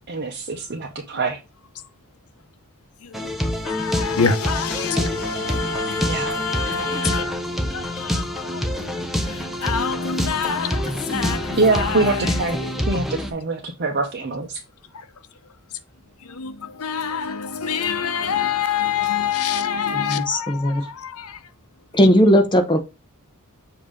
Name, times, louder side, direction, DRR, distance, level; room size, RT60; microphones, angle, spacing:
voice 1, 0.1-1.4 6.0-6.3 7.0-7.1 11.6-12.6 12.9-14.6 19.8-19.9, right 3 dB, 50° right, 0.8 m, -24 dB
sound 1, 3.1-13.3, left 1 dB, ahead, 0.8 m, -26 dB
voice 2, 3.7-7.3 7.7-8.6 9.2-12.3 12.6-12.8 16.4-16.5 16.8-21.3, left 6 dB, 85° left, 0.8 m, -26 dB
voice 3, 19.9-20.8 21.9-22.8, equal, 20° left, 0.9 m, -17 dB
7.3 x 2.9 x 5.0 m
head